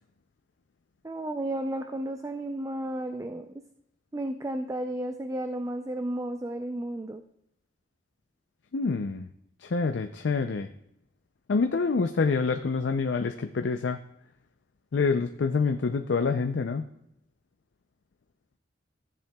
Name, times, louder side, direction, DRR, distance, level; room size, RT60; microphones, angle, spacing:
voice 1, 1.0-3.5 4.1-7.2, right 1 dB, 15° right, 6 dB, 0.4 m, -33 dB
voice 2, 8.7-9.3 9.6-10.7 11.5-14.0 14.9-16.9, left 4 dB, 75° left, 7 dB, 0.5 m, -26 dB
15.0 x 7.4 x 2.3 m, 0.78 s
head